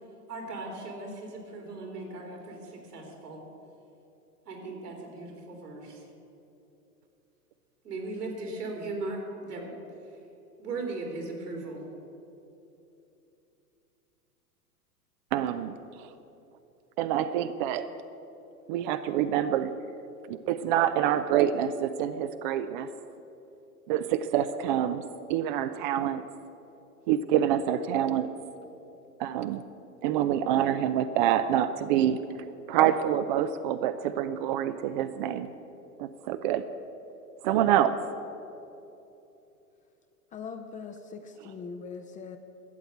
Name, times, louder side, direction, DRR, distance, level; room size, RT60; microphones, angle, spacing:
voice 1, 0.3-3.4 4.5-6.1 7.8-9.7 10.6-11.8, right 2 dB, 80° right, 1 dB, 3.5 m, -38 dB
voice 2, 15.3-16.1 17.0-17.9 18.7-19.7 20.3-22.9 23.9-26.2 27.1-28.3 29.2-29.6 30.0-32.2 32.7-35.5 36.0-36.7 37.4-38.0, right 10 dB, 35° right, 11 dB, 0.4 m, -26 dB
voice 3, 40.3-42.4, left 5 dB, 15° left, 6 dB, 0.5 m, -41 dB
13.0 x 7.8 x 8.4 m, 2.9 s
hypercardioid pair, 105°, 46 cm